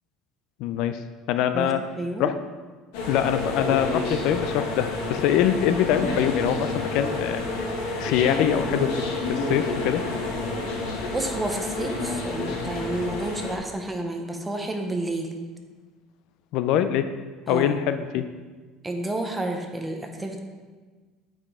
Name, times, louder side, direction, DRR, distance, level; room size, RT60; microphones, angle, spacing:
voice 1, 0.6-1.0 1.3-1.8 2.2-2.3 3.1-7.7 8.0-10.0 16.5-17.1 17.5-18.3, left 10 dB, 70° left, 10 dB, 0.4 m, -24 dB
voice 2, 1.5-2.3 11.1-15.3 17.5-17.8 18.8-20.4, right 1 dB, 10° right, 3 dB, 0.8 m, -30 dB
sound 1, 2.9-13.6, left 2 dB, 85° left, 1.3 m, -29 dB
8.9 x 5.0 x 3.6 m, 1.4 s
cardioid pair, 130°, 0 cm